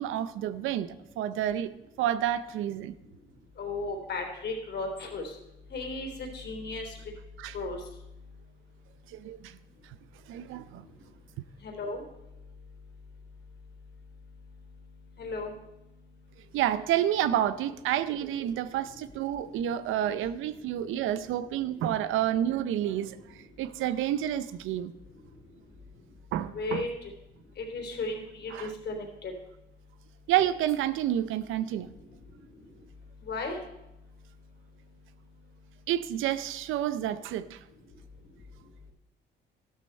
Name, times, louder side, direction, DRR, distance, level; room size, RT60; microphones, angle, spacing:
voice 1, 0.0-1.7 2.0-2.9 7.4-7.6 9.1-9.6 10.3-10.9 16.5-24.9 26.3-26.9 28.5-28.7 30.3-31.9 35.9-37.6, right 11 dB, 90° right, 14 dB, 0.7 m, -29 dB
voice 2, 3.6-5.3 5.7-6.9 7.5-7.8 11.6-12.0 15.2-15.5 26.5-26.9 27.6-29.3 33.3-33.6, left 3 dB, 60° left, 3 dB, 3.4 m, -35 dB
13.0 x 11.5 x 4.4 m, 0.92 s
cardioid pair, 90°, 20 cm